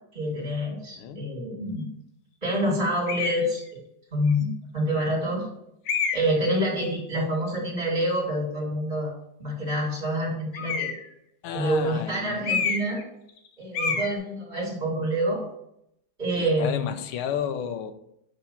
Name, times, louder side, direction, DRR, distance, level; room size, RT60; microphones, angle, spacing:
voice 1, 0.1-1.9 2.4-3.6 4.1-5.5 6.1-9.1 9.4-10.9 11.5-13.0 13.6-15.4 16.2-16.9, equal, 20° right, -4 dB, 2.2 m, -27 dB
voice 2, 1.0-1.3 11.4-12.7 16.4-17.9, left 8 dB, 90° left, 9 dB, 1.5 m, -32 dB
sound 1, 3.1-3.5 4.3-4.4 5.9-6.4 10.5-11.1 12.4-13.0 13.3-13.5 13.7-14.2, left 5 dB, 65° left, 1.3 m, -28 dB
6.9 x 3.0 x 5.6 m, 0.77 s
omnidirectional pair, 2.3 m